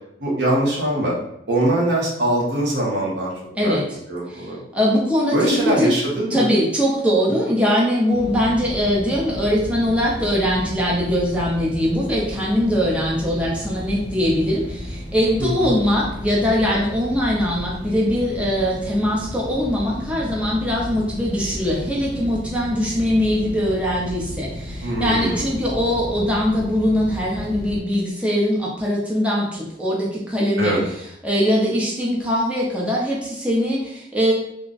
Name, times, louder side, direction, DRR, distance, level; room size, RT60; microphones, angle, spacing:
voice 1, 0.2-1.1 1.5-3.3 3.6-3.8 4.1-4.6 5.3-6.5 15.4-15.7 24.8-25.5 30.6-30.8, right 1 dB, 70° right, -4 dB, 1.2 m, -22 dB
voice 2, 4.3-5.9 6.3-30.8 31.2-34.3, equal, 5° right, -5 dB, 0.8 m, -21 dB
sound 1, 8.1-27.8, equal, 20° left, 1.1 m, -33 dB
3.4 x 2.3 x 3.9 m, 0.76 s
head